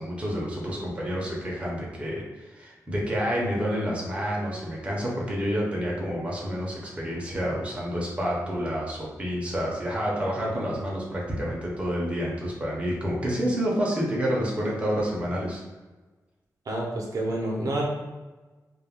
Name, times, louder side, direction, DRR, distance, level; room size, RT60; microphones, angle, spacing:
voice 1, 0.0-15.6, equal, 20° right, -4 dB, 0.6 m, -29 dB
voice 2, 16.7-17.9, right 1 dB, 65° right, -2 dB, 0.6 m, -28 dB
2.3 x 2.1 x 3.4 m, 1.2 s
wide cardioid pair, 150°, 7 cm